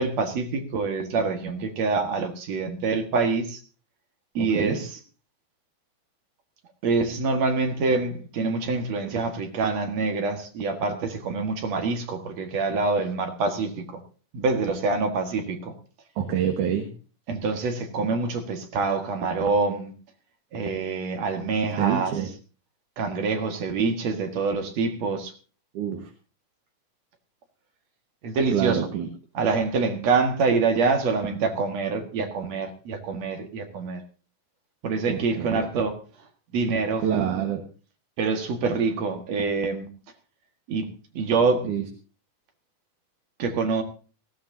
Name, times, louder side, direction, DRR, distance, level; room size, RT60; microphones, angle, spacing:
voice 1, 0.0-3.6 4.3-4.9 6.8-14.0 14.3-15.7 17.3-19.9 20.5-22.1 23.0-25.3 28.2-28.9 29.3-34.0 34.8-36.0 36.5-37.0 38.2-39.9 40.7-40.9 41.1-41.7 43.4-43.8, right 4 dB, 60° right, 6 dB, 2.8 m, -26 dB
voice 2, 4.4-4.8 16.2-16.9 21.8-22.3 25.7-26.1 28.5-29.1 35.1-35.6 37.0-37.6 41.6-41.8, right 9 dB, 80° right, 4 dB, 3.0 m, -26 dB
19.5 x 16.5 x 2.7 m, 0.36 s
omnidirectional pair, 3.5 m